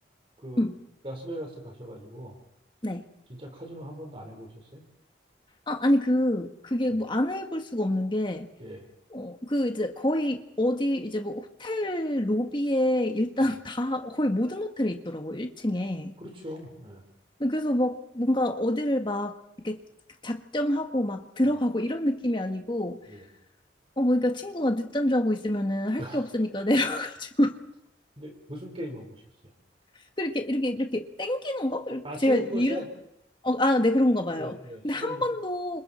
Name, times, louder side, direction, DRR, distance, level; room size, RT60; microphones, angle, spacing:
voice 1, 1.0-2.4 3.3-4.8 6.9-7.0 8.6-8.8 16.2-17.0 23.1-23.2 26.0-26.3 28.2-29.5 32.0-32.9 34.4-35.2, equal, 30° right, 2 dB, 4.4 m, -39 dB
voice 2, 5.7-8.5 9.1-16.1 17.4-19.4 19.6-19.8 20.2-23.0 24.0-27.6 30.2-32.8 33.4-34.6 34.8-35.8, left 1 dB, 25° left, 5 dB, 1.6 m, -26 dB
29.5 x 26.5 x 4.4 m, 0.80 s
head